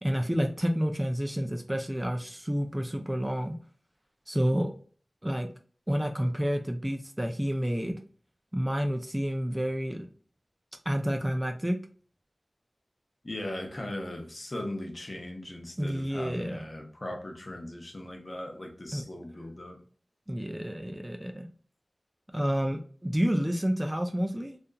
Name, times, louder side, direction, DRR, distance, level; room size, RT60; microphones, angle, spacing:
voice 1, 0.0-3.6 4.3-4.7 5.2-5.5 5.9-8.0 8.5-10.1 10.9-11.8 15.8-16.6 18.9-19.0 20.3-21.5 22.3-24.6, equal, 10° right, 0.3 m, -29 dB
voice 2, 13.2-19.8, left 1 dB, 45° left, 0.6 m, -38 dB
2.7 x 2.4 x 2.2 m
wide cardioid pair, 70°, 0 cm